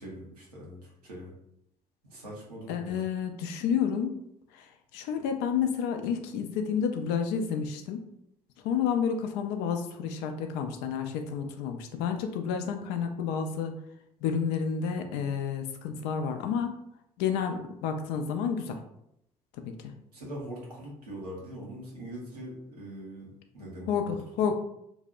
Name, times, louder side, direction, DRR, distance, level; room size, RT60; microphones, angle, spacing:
voice 1, 0.0-1.3 2.0-3.0 20.1-24.5, right 1 dB, 85° right, -4 dB, 0.7 m, -42 dB
voice 2, 2.7-4.2 4.5-8.0 8.6-13.7 14.2-16.8 17.2-18.8 19.5-19.9 23.9-24.5, left 7 dB, 60° left, 5 dB, 0.4 m, -30 dB
2.6 x 2.1 x 2.4 m, 0.78 s
figure-of-eight pair, 50°, 19 cm